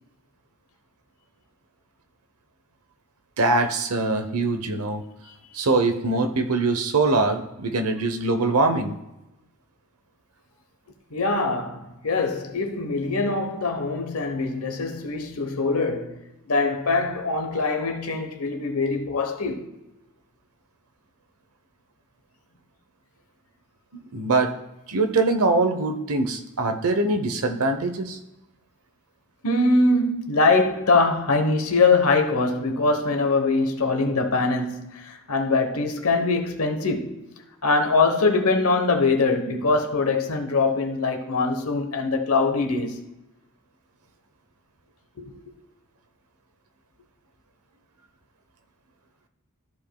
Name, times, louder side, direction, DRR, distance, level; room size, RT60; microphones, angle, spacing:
voice 1, 3.4-5.0 5.5-8.9 23.9-24.5 24.9-28.2, right 3 dB, 75° right, 0.9 m, -23 dB
voice 2, 11.1-16.2 16.5-19.7 29.4-37.2 37.6-43.0 45.2-45.3, left 3 dB, 70° left, 1.1 m, -23 dB
13.5 x 5.2 x 2.3 m
head